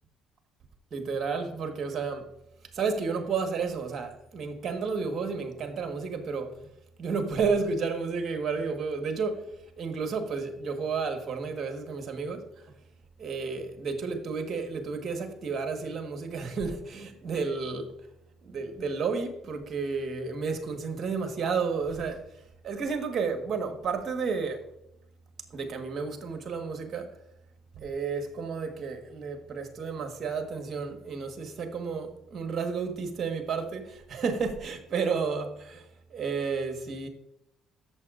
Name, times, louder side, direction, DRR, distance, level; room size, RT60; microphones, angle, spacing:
voice 1, 0.9-2.3 2.7-6.7 7.0-12.7 13.2-17.9 18.4-24.6 25.5-27.1 27.7-37.1, right 5 dB, 45° right, 1.5 m, -32 dB
13.5 x 7.1 x 2.5 m
hypercardioid pair, 60°, 0 cm